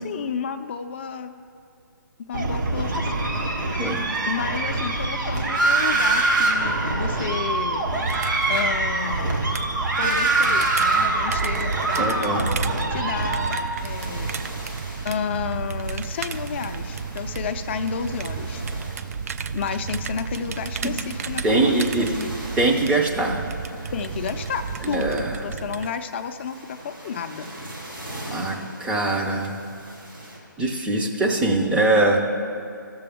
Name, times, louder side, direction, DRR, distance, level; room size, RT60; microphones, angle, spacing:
voice 1, 0.0-1.4 2.3-3.1 4.3-7.9 8.5-9.5 10.0-12.5 12.9-13.6 13.8-14.3 15.0-18.6 19.5-22.4 23.9-27.5, left 6 dB, 35° left, 9 dB, 0.4 m, -31 dB
sound 1, 2.3-13.6, right 2 dB, 65° right, 1.6 m, -24 dB
sound 2, 8.0-25.9, right 5 dB, 45° right, 0.4 m, -33 dB
voice 2, 12.0-12.4 21.4-22.1 22.6-23.5 24.9-25.4 28.3-29.6 30.6-32.2, right 2 dB, 10° right, 0 dB, 0.6 m, -22 dB
sound 3, 13.8-30.4, right 1 dB, 85° right, 2.4 m, -41 dB
15.5 x 6.9 x 3.6 m, 2.6 s
figure-of-eight pair, 145°, 11 cm